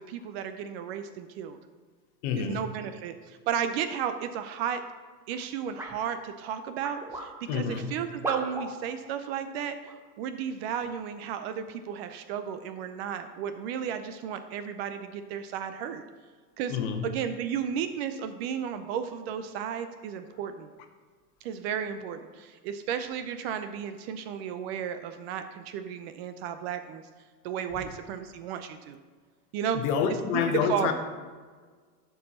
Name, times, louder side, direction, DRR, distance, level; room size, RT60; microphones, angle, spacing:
voice 1, 0.0-1.6 2.4-4.8 5.3-9.8 10.2-16.0 16.6-16.8 17.0-20.7 21.4-27.0 27.4-29.0 29.5-29.8 30.3-30.9, right 8 dB, 40° right, 9 dB, 0.5 m, -33 dB
voice 2, 2.2-2.6 7.5-7.9 16.7-17.1 29.7-30.9, left 7 dB, 45° left, 6 dB, 1.1 m, -28 dB
sound 1, 5.8-6.0 6.8-7.3 8.2-8.7 9.8-9.9 10.7-10.9, right 1 dB, 5° right, 0.8 m, -36 dB
11.5 x 4.6 x 4.2 m, 1.5 s
hypercardioid pair, 120°, 48 cm